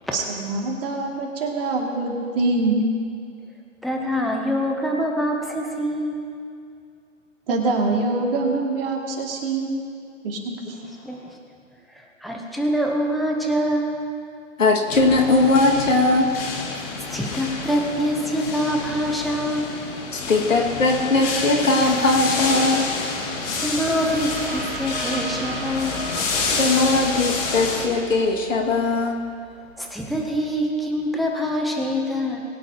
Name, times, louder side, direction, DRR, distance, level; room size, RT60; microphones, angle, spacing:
voice 1, 0.1-2.8 7.5-9.7 10.2-10.6, right 3 dB, 45° right, 0 dB, 2.5 m, -24 dB
voice 2, 3.8-6.1 11.0-11.2 11.9-13.9 17.1-19.7 23.5-26.1 29.8-32.4, equal, ahead, 0 dB, 0.7 m, -25 dB
voice 3, 14.6-16.3 20.1-22.9 26.6-29.2, left 3 dB, 75° left, 1 dB, 2.2 m, -19 dB
sound 1, 14.9-27.9, left 4 dB, 30° left, 1.8 m, -29 dB
sound 2, 21.8-31.0, right 2 dB, 70° right, 3.3 m, -37 dB
21.5 x 9.3 x 2.9 m, 2.3 s
hypercardioid pair, 135°, 39 cm